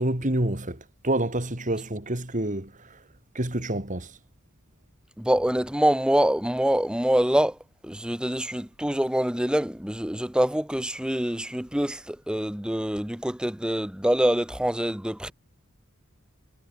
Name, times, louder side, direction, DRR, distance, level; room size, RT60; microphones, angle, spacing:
voice 1, 0.0-3.0 3.3-4.2, right 1 dB, 35° right, 3.4 m, -28 dB
voice 2, 5.2-7.6 7.8-15.3, equal, 5° right, 0.9 m, -25 dB
head